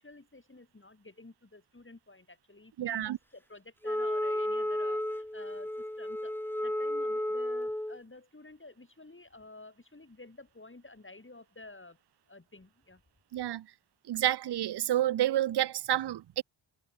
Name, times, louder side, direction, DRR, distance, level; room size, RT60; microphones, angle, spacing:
voice 1, 0.0-12.0 12.3-13.0, left 2 dB, 25° left, 4.3 m, -52 dB
voice 2, 2.8-3.2 13.3-13.7 14.1-16.4, right 13 dB, 55° right, 0.5 m, -29 dB
Wind instrument woodwind instrument, 3.8-8.0, left 1 dB, 5° left, 0.8 m, -32 dB
wide cardioid pair, 75°, 50 cm